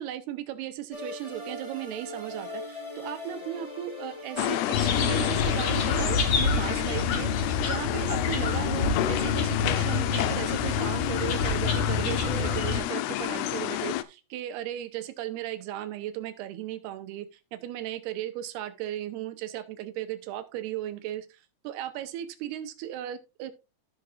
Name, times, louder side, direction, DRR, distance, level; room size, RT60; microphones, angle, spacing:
voice 1, 0.0-7.3 7.6-23.5, right 12 dB, 85° right, 2.9 m, -36 dB
sound 1, 0.9-7.8, left 1 dB, 15° left, 1.1 m, -41 dB
sound 2, 4.4-14.0, left 14 dB, 85° left, 2.5 m, -30 dB
sound 3, 4.7-12.8, left 4 dB, 50° left, 2.1 m, -28 dB
15.5 x 6.1 x 2.4 m
omnidirectional pair, 4.6 m